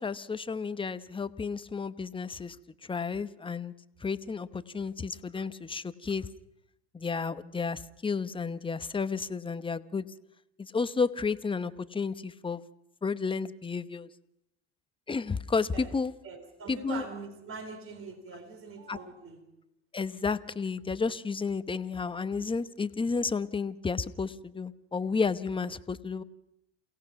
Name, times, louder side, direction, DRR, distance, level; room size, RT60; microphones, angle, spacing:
voice 1, 0.0-2.6 2.8-3.7 4.0-6.3 6.9-10.1 10.6-12.6 13.0-14.1 15.1-16.1 16.7-17.0 18.9-19.0 19.9-26.2, left 4 dB, 15° left, 13 dB, 0.9 m, -32 dB
voice 2, 16.2-19.4, right 4 dB, 40° right, 7 dB, 4.3 m, -42 dB
28.5 x 17.0 x 5.8 m, 0.82 s
hypercardioid pair, 85°, 33 cm